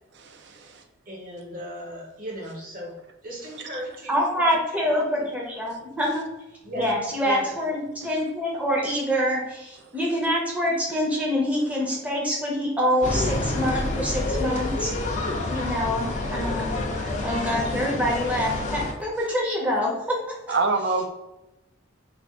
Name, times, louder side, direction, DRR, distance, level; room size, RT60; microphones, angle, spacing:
voice 1, 1.1-3.0 3.2-5.3 6.6-7.0 7.2-7.5, equal, 40° right, -1 dB, 0.9 m, -37 dB
voice 2, 4.1-6.2 6.8-14.9 15.5-16.8 17.2-20.4, equal, 5° right, -3 dB, 0.6 m, -26 dB
sound 1, 13.0-18.9, left 2 dB, 35° left, 0.4 m, -28 dB
voice 3, 20.5-21.1, right 3 dB, 55° right, 6 dB, 0.4 m, -25 dB
3.4 x 2.3 x 3.5 m, 0.96 s
head